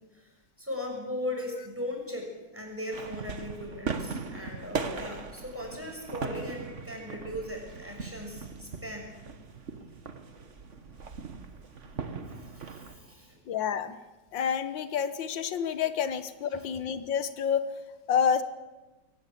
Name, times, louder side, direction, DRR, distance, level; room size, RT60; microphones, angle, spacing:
voice 1, 0.6-9.1 12.1-13.4 16.5-16.7, left 1 dB, 5° right, 0 dB, 6.4 m, -38 dB
sound 1, 2.9-13.0, right 5 dB, 45° right, 1.5 m, -39 dB
voice 2, 13.5-14.0 14.3-17.7 18.1-18.4, left 8 dB, 90° left, 11 dB, 1.8 m, -28 dB
22.5 x 18.5 x 8.5 m, 1.1 s
omnidirectional pair, 2.0 m